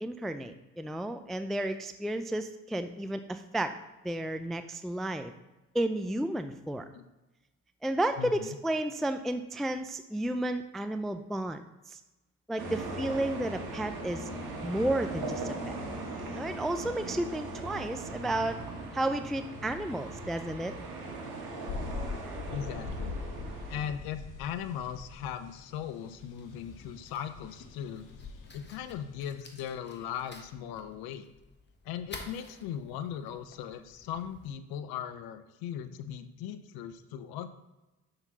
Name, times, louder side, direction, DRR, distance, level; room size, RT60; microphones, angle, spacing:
voice 1, 0.0-3.8 4.0-5.3 5.7-6.9 7.8-11.6 11.9-12.0 12.5-14.3 14.6-15.7 16.3-18.6 18.9-20.7, right 1 dB, ahead, 8 dB, 0.4 m, -32 dB
voice 2, 8.2-8.6 22.5-23.2 23.7-28.0 28.5-31.3 31.8-37.5, left 9 dB, 75° left, 11 dB, 0.6 m, -38 dB
sound 1, 12.6-23.9, right 2 dB, 75° right, 1.7 m, -39 dB
sound 2, 21.7-29.3, left 4 dB, 55° left, 1.2 m, -43 dB
Fire, 25.7-34.5, left 3 dB, 30° left, 1.3 m, -52 dB
6.0 x 3.8 x 5.6 m, 1.0 s
supercardioid pair, 55°, 37 cm